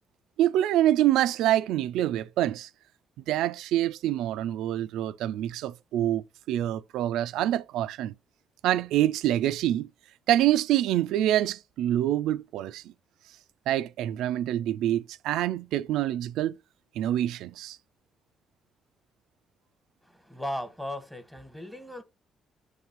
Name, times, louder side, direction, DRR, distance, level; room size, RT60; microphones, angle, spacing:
voice 1, 0.4-2.7 3.3-8.1 8.6-9.9 10.3-12.9 13.7-16.6 17.0-17.8, right 13 dB, 90° right, 0.3 m, -26 dB
voice 2, 20.0-22.0, left 1 dB, 5° left, 1.3 m, -37 dB
7.3 x 3.2 x 4.5 m
cardioid pair, 90°, 0 cm